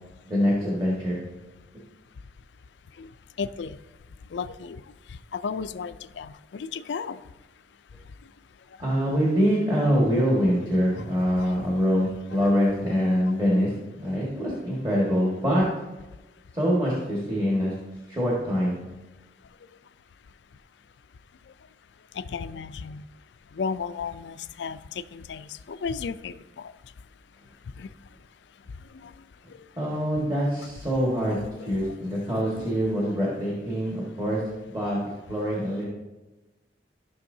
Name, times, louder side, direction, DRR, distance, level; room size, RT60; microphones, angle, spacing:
voice 1, 0.2-1.2 8.8-15.6 16.5-17.7 18.1-18.8 29.8-34.4 34.7-35.0 35.3-35.9, equal, 25° right, -5 dB, 1.7 m, -24 dB
voice 2, 3.4-3.7 4.3-4.8 5.3-7.2 11.1-11.5 22.3-23.0 23.6-24.8 25.1-26.7 27.8-27.9 32.5-32.6, left 5 dB, 85° left, 13 dB, 0.4 m, -34 dB
14.0 x 6.3 x 2.7 m, 1.1 s
head